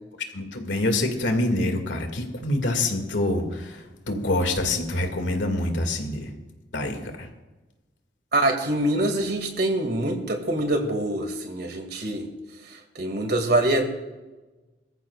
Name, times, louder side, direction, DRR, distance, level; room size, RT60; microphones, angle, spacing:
voice 1, 0.3-6.3 6.7-7.3, left 2 dB, 90° left, 4 dB, 2.2 m, -26 dB
voice 2, 8.3-12.3 12.6-13.8, right 1 dB, 60° right, 4 dB, 2.3 m, -25 dB
23.5 x 14.0 x 2.4 m, 1.2 s
head